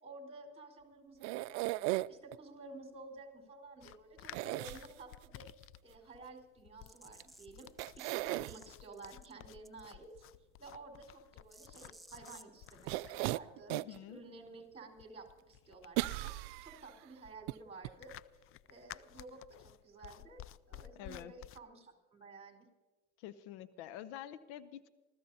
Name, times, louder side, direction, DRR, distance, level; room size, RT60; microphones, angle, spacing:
voice 1, 0.0-5.5 5.8-7.7 8.0-10.2 10.6-18.1 18.7-20.4 20.7-22.7, right 3 dB, 20° right, 3 dB, 4.6 m, -53 dB
sound 1, 1.2-2.4 4.3-5.3 7.2-7.3 7.8-8.6 12.9-14.0 14.5-14.6 16.0-16.9 17.5-17.6 17.8-17.9, right 20 dB, 70° right, 0.5 m, -36 dB
sound 2, 3.8-21.6, left 13 dB, 40° left, 0.4 m, -55 dB
sound 3, 6.9-8.7 8.9-9.3 9.6-10.0 11.5-13.3, right 1 dB, ahead, 0.9 m, -58 dB
voice 2, 13.7-14.2 20.9-21.3 23.2-24.9, left 12 dB, 75° left, 15 dB, 0.8 m, -47 dB
26.0 x 15.0 x 2.8 m, 1.2 s
supercardioid pair, 90°, 34 cm